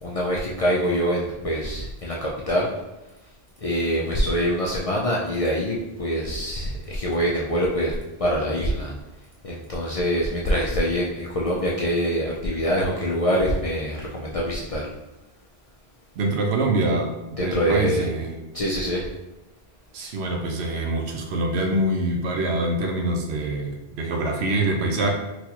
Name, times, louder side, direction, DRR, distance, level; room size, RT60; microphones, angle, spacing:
voice 1, 0.0-2.7 3.6-8.9 9.4-14.8 17.4-18.1 18.5-19.1, equal, 55° left, -4 dB, 0.4 m, -24 dB
voice 2, 16.2-18.4 19.9-25.1, right 2 dB, 85° right, 2 dB, 0.9 m, -25 dB
4.1 x 2.4 x 2.8 m, 1.0 s
omnidirectional pair, 1.1 m